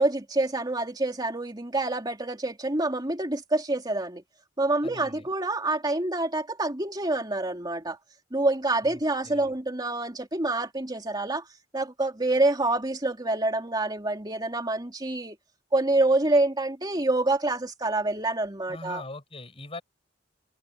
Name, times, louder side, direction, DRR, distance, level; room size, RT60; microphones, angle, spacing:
voice 1, 0.0-4.2 4.6-8.0 8.3-11.4 11.7-15.4 15.7-19.0, right 2 dB, 25° right, 3.1 m, -27 dB
voice 2, 4.8-5.3 8.8-9.0 9.2-9.5 18.7-19.8, left 2 dB, 30° left, 6.6 m, -41 dB
head